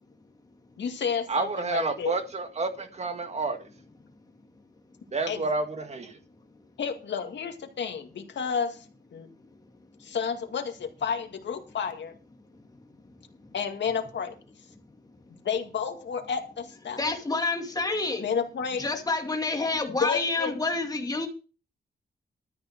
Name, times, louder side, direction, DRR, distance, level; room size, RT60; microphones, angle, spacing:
voice 1, 0.8-2.2 5.3-5.4 6.8-8.9 9.1-9.3 10.0-12.1 13.5-14.4 15.4-17.1 18.2-18.9 19.9-20.5, left 6 dB, 80° left, 2.1 m, -31 dB
voice 2, 1.3-3.7 5.1-6.2, right 3 dB, 35° right, 1.9 m, -29 dB
voice 3, 17.0-18.3 18.8-21.3, left 3 dB, 20° left, 2.3 m, -28 dB
13.0 x 6.6 x 6.6 m
wide cardioid pair, 165°, 18 cm